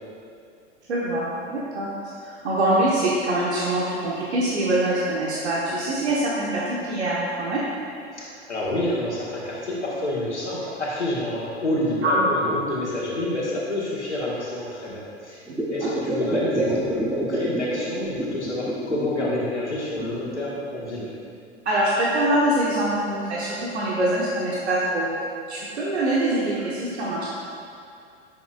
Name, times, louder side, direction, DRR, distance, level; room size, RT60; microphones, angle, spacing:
voice 1, 0.9-1.9 2.2-7.6 12.0-12.1 15.5-15.9 21.6-25.2 25.5-27.3, right 1 dB, 75° right, -6 dB, 1.3 m, -24 dB
voice 2, 8.1-21.1, left 1 dB, 90° left, -6 dB, 1.7 m, -28 dB
sound 1, 15.5-17.7 17.9-19.3 19.7-20.6 21.3-21.4, right 1 dB, 5° right, 0.8 m, -28 dB
10.5 x 7.0 x 2.5 m, 2.5 s
figure-of-eight pair, 90°, 33 cm